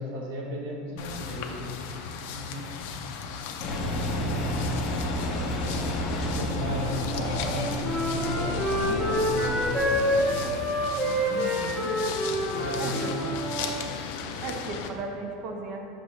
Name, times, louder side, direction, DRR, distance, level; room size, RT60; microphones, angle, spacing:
voice 1, 0.0-1.9 2.3-2.7 4.0-4.7 6.2-7.9 8.2-9.7 12.5-13.3 14.3-14.4, equal, 80° right, -1 dB, 1.2 m, -36 dB
sound 1, 1.0-14.9, left 6 dB, 70° left, 0.5 m, -36 dB
Engine, 3.6-10.6, left 1 dB, 40° left, 0.9 m, -31 dB
Wind instrument woodwind instrument, 7.4-13.8, equal, 25° right, 1.1 m, -27 dB
voice 2, 11.3-11.9 12.8-13.1 14.4-15.8, right 4 dB, 45° right, 2 dB, 0.7 m, -36 dB
6.0 x 3.0 x 5.5 m, 2.4 s
supercardioid pair, 145°, 0 cm